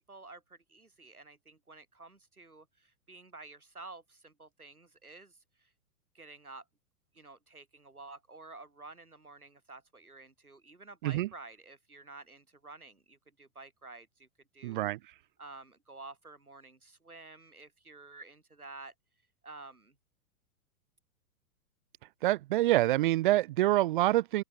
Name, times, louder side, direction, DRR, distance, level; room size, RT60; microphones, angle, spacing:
voice 1, 0.1-5.7 6.1-6.6 7.1-14.3 14.5-14.9 15.4-18.9 19.4-19.9, right 3 dB, 90° right, 2.1 m, -51 dB
voice 2, 14.6-15.0 22.2-24.4, right 16 dB, 35° right, 0.6 m, -26 dB
open air
figure-of-eight pair, 105°, 43 cm